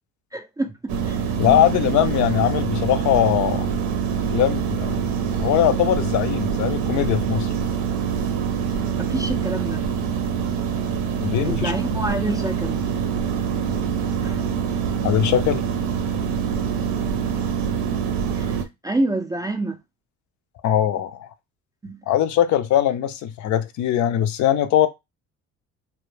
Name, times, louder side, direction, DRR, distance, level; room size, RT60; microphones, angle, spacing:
voice 1, 0.3-1.6 9.0-9.8 11.5-12.8 14.2-14.4 18.4-18.6 18.8-19.8 21.8-22.0, right 2 dB, 10° right, 0.3 m, -27 dB
sound 1, 0.9-18.6, right 7 dB, 70° right, 0.6 m, -25 dB
voice 2, 1.4-3.7 4.3-5.0 5.4-7.5 11.2-11.7 15.0-15.7 20.6-21.3 22.1-24.9, left 11 dB, 60° left, 0.4 m, -21 dB
2.1 x 2.1 x 3.1 m
supercardioid pair, 90°, 34 cm